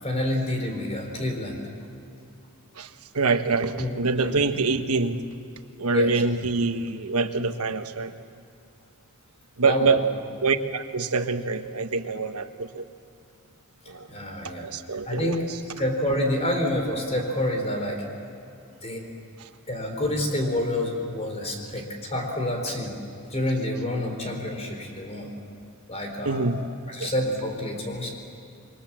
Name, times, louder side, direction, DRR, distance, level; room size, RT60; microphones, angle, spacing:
voice 1, 0.0-1.6 3.8-3.9 4.2-4.4 5.9-6.1 9.6-10.0 14.1-14.7 15.1-15.4 15.8-18.0 18.8-19.0 19.7-23.0 23.3-25.3 25.9-26.5 26.9-28.1, left 1 dB, 30° left, 3 dB, 4.0 m, -28 dB
voice 2, 2.7-5.2 5.8-8.1 9.6-10.0 10.4-12.9 13.9-14.1 14.4-15.6 19.4-19.5 26.2-26.6 27.0-27.1, right 4 dB, 85° right, 8 dB, 1.3 m, -25 dB
27.0 x 23.5 x 7.5 m, 2.7 s
head